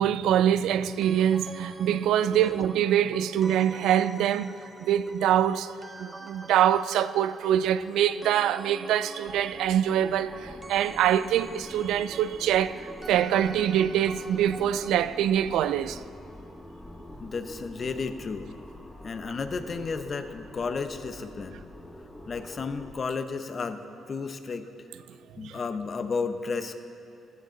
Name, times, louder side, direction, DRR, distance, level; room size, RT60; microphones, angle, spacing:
voice 1, 0.0-4.5 4.8-5.7 6.0-16.0 25.4-25.6, right 10 dB, 85° right, 0.3 m, -24 dB
sound 1, 1.0-14.9, right 2 dB, 20° right, 0.8 m, -45 dB
sound 2, 8.4-8.6 9.0-22.9, left 1 dB, 10° left, 1.2 m, -46 dB
voice 2, 17.2-18.5 19.0-21.6 22.3-24.7 25.4-26.8, left 4 dB, 45° left, 0.8 m, -33 dB
15.0 x 13.0 x 3.9 m
cardioid pair, 90°, 0 cm